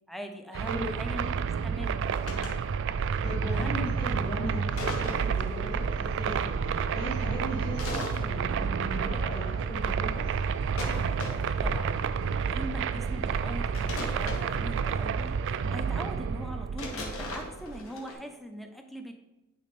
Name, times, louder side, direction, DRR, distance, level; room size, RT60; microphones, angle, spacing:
voice 1, 0.1-1.4 1.6-2.1 3.5-3.9 11.5-12.1 12.5-15.4 15.7-19.1, equal, ahead, 5 dB, 0.6 m, -41 dB
sound 1, 0.5-17.9, right 6 dB, 60° right, 0.3 m, -30 dB
sound 2, 2.0-2.6 4.8-5.4 7.8-8.2 10.8-11.6 13.7-14.5 16.8-18.1, left 2 dB, 80° left, 1.5 m, -37 dB
voice 2, 3.2-10.3, equal, 35° left, -7 dB, 2.0 m, -38 dB
sound 3, 4.0-15.9, equal, 55° left, 2.4 m, -45 dB
9.4 x 4.1 x 4.2 m, 1.1 s
head